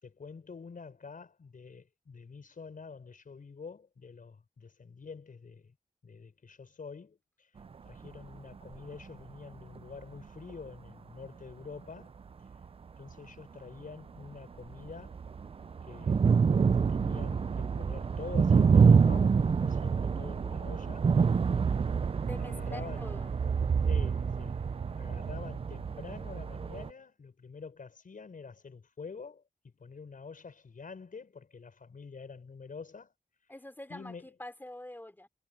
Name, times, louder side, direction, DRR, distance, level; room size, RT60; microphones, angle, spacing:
voice 1, 0.0-5.8 6.0-7.5 7.8-12.1 13.0-15.2 15.8-16.4 16.9-21.1 22.4-23.1 23.9-24.6 25.0-33.1 33.9-34.3, left 5 dB, 65° left, 5.5 m, -47 dB
sound 1, 8.1-8.2 8.7-8.8 9.8-9.9 10.5-10.6 12.5-12.7 13.1-13.2 14.2-14.3 14.6-26.9, right 5 dB, 40° right, 0.4 m, -27 dB
Bowed string instrument, 21.7-26.4, right 5 dB, 80° right, 3.6 m, -44 dB
voice 2, 22.2-23.3 33.5-35.3, left 1 dB, 15° left, 3.3 m, -45 dB
wide cardioid pair, 115°, 15 cm